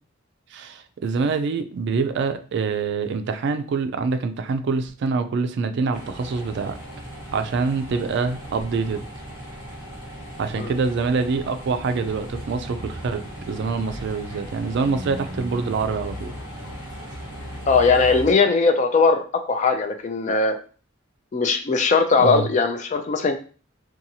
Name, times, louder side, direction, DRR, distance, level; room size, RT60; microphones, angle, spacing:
voice 1, 0.5-6.8 7.3-9.0 10.4-16.3 22.2-22.5, right 4 dB, 60° right, 9 dB, 0.3 m, -25 dB
sound 1, 5.9-18.3, equal, 75° left, 1.1 m, -36 dB
voice 2, 17.7-20.6 21.3-23.4, left 4 dB, 35° left, 7 dB, 0.3 m, -19 dB
2.8 x 2.3 x 2.7 m, 0.39 s
head